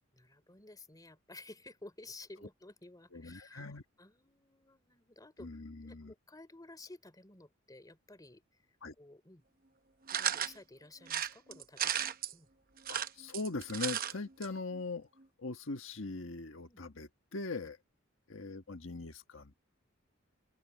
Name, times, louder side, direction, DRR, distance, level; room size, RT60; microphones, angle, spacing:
voice 1, 0.1-8.4 9.0-9.4 10.1-12.5 16.7-16.8, left 2 dB, 20° left, 3.3 m, -54 dB
voice 2, 3.1-3.8 5.4-6.1 8.8-8.9 12.9-15.1 15.4-17.8 18.3-19.5, left 3 dB, 75° left, 1.5 m, -41 dB
sound 1, 10.1-10.5 11.1-12.3 12.8-14.1 14.4-14.5 14.7-14.8, right 9 dB, 45° right, 0.8 m, -34 dB
open air
head